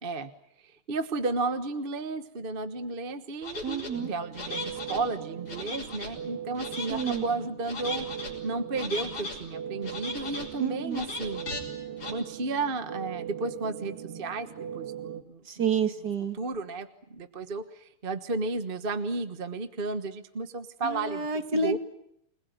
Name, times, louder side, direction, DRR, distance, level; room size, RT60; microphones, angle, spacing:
voice 1, 0.9-8.1 8.4-11.5 12.1-14.5 14.7-15.8 16.4-21.3 21.5-21.8, right 3 dB, 30° right, 11 dB, 1.2 m, -33 dB
sound 1, 3.4-3.9 4.3-5.0 5.5-6.1 6.6-7.2 7.6-8.3 8.7-9.4 9.8-10.5 10.9-11.6 12.0-12.1, left 3 dB, 80° left, 7.1 m, -37 dB
voice 2, 3.6-4.1 6.9-7.2 10.6-11.1 15.5-16.4 20.8-21.8, right 5 dB, 50° right, 9 dB, 2.5 m, -29 dB
sound 2, 3.9-15.2, right 9 dB, 85° right, 2.8 m, -40 dB
29.5 x 21.0 x 9.5 m, 0.77 s
omnidirectional pair, 2.4 m